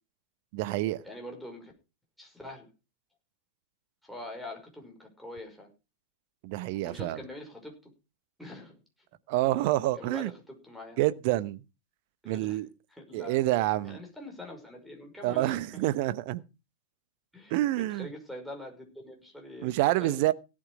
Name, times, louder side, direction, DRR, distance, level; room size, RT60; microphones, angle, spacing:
voice 1, 0.5-1.0 6.4-7.2 9.3-10.3 11.0-11.6 12.2-12.7 13.1-14.0 15.2-16.4 17.5-18.1 19.6-20.3, right 16 dB, 45° right, 0.9 m, -27 dB
voice 2, 1.0-1.7 2.2-2.7 4.0-5.7 6.8-7.9 8.4-8.8 10.0-11.0 12.2-12.6 13.0-13.4 13.9-15.8 17.3-20.3, left 1 dB, ahead, 5.6 m, -44 dB
17.0 x 8.7 x 4.9 m
figure-of-eight pair, 95°, 0 cm